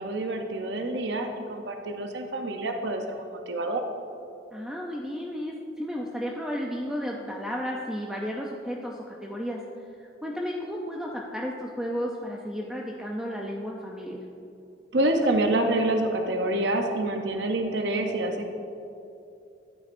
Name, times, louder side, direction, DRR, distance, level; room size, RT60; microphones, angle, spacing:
voice 1, 0.0-3.8 14.9-18.5, right 1 dB, 70° right, 4 dB, 0.7 m, -27 dB
voice 2, 4.5-9.6 10.0-14.2, equal, 5° right, -2 dB, 0.5 m, -33 dB
13.5 x 8.7 x 2.6 m, 2.8 s
head